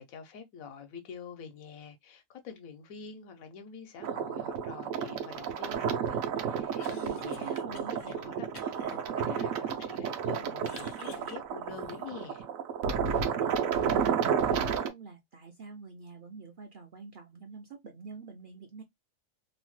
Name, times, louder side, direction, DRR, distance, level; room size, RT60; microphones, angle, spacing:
voice 1, 0.0-12.4, left 6 dB, 85° left, 1.1 m, -46 dB
sound 1, 4.0-14.9, right 7 dB, 80° right, 1.0 m, -31 dB
Cough, 6.6-8.2 8.5-10.0 10.4-12.3, left 5 dB, 60° left, 0.8 m, -52 dB
voice 2, 6.9-8.0 13.2-18.8, right 5 dB, 60° right, 0.5 m, -47 dB
2.9 x 2.1 x 3.0 m
omnidirectional pair, 1.4 m